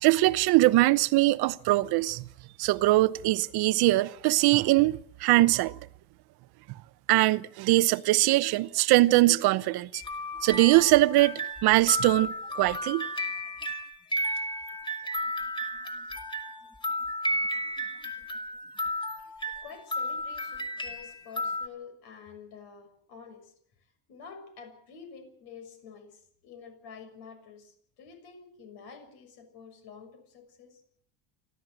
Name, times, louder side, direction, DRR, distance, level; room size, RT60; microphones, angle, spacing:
voice 1, 0.0-2.2 2.6-5.8 7.1-10.0 10.4-13.1, right 18 dB, 60° right, 0.9 m, -22 dB
sound 1, 9.9-21.7, equal, 10° left, 2.5 m, -33 dB
voice 2, 19.6-23.5 24.1-30.8, left 6 dB, 65° left, 6.8 m, -48 dB
29.0 x 12.5 x 8.0 m
cardioid pair, 140°, 43 cm